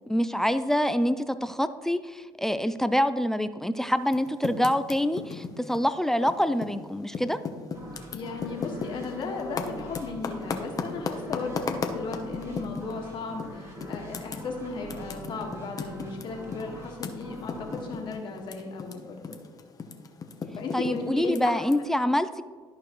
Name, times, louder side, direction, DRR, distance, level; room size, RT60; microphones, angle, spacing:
voice 1, 0.1-7.4 20.7-22.4, equal, 5° left, 11 dB, 0.4 m, -26 dB
Typing, 4.0-6.8 7.1-13.0 13.4-13.5 13.8-18.9 19.2-21.7, left 5 dB, 40° left, 0.9 m, -35 dB
sound 1, 7.7-19.2, equal, 30° right, 2.3 m, -44 dB
voice 2, 8.1-19.4 20.5-21.9, left 4 dB, 55° left, 1 dB, 1.7 m, -36 dB
13.5 x 4.6 x 3.1 m, 1.5 s
supercardioid pair, 80°, 10 cm